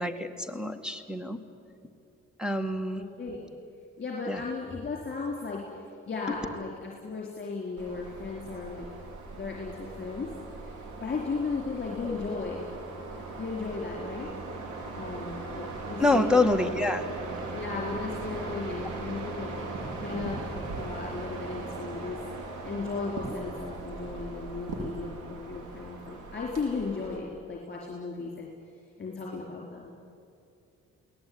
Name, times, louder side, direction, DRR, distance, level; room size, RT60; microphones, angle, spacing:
voice 1, 0.0-1.4 2.4-3.0 4.3-4.4 16.0-17.0, left 2 dB, 5° right, 8 dB, 2.1 m, -26 dB
voice 2, 2.9-3.5 4.0-8.9 9.3-10.7 11.0-12.6 13.4-14.3 15.0-16.7 17.5-22.2 22.6-28.5 29.0-29.9, left 4 dB, 35° left, -2 dB, 4.4 m, -36 dB
sound 1, 7.8-27.2, right 3 dB, 85° right, 4.6 m, -39 dB
22.0 x 18.0 x 9.7 m, 2.6 s
cardioid pair, 90°, 30 cm